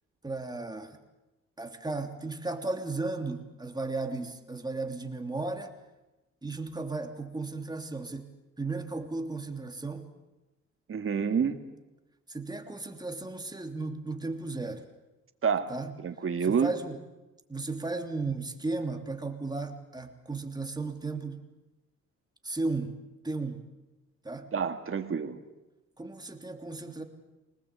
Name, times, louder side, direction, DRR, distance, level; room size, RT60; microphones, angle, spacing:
voice 1, 0.2-1.0 1.6-5.7 6.4-8.3 8.6-10.1 11.5-11.6 12.3-14.9 15.7-15.9 16.4-17.0 17.5-21.4 22.4-23.0 23.2-23.6 24.2-24.5 26.0-27.0, right 3 dB, 15° right, 4 dB, 3.0 m, -35 dB
voice 2, 10.9-11.6 15.4-15.7 16.0-16.7 24.5-25.4, right 6 dB, 45° right, 7 dB, 2.3 m, -28 dB
25.0 x 19.5 x 8.4 m, 1.0 s
cardioid pair, 90°, 30 cm